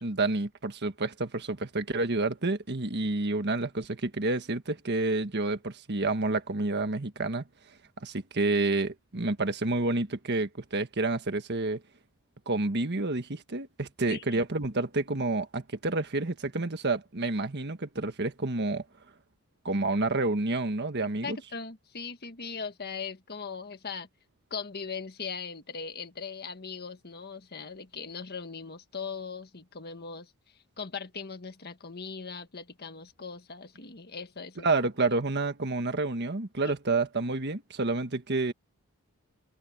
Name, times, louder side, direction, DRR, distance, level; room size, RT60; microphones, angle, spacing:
voice 1, 0.0-7.4 8.0-11.8 12.4-18.8 19.6-21.4 34.6-38.5, right 2 dB, 50° right, 1.6 m, -29 dB
voice 2, 14.1-14.4 21.2-24.1 24.5-30.3 30.8-34.7 36.6-36.7, left 5 dB, 45° left, 1.6 m, -39 dB
head